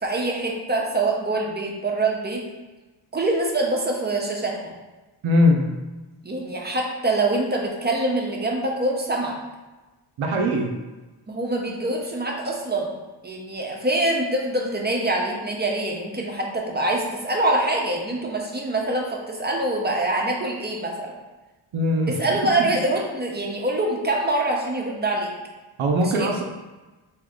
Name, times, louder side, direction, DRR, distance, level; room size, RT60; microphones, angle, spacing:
voice 1, 0.0-2.4 3.1-4.7 6.2-9.4 11.3-12.9 13.2-21.1 22.1-25.3 26.0-26.4, right 2 dB, 20° right, -1 dB, 0.7 m, -25 dB
voice 2, 5.2-5.7 10.2-10.7 21.7-22.1 25.8-26.4, left 1 dB, 85° right, 1 dB, 0.7 m, -20 dB
3.7 x 2.7 x 3.5 m, 1.2 s
cardioid pair, 80°, 46 cm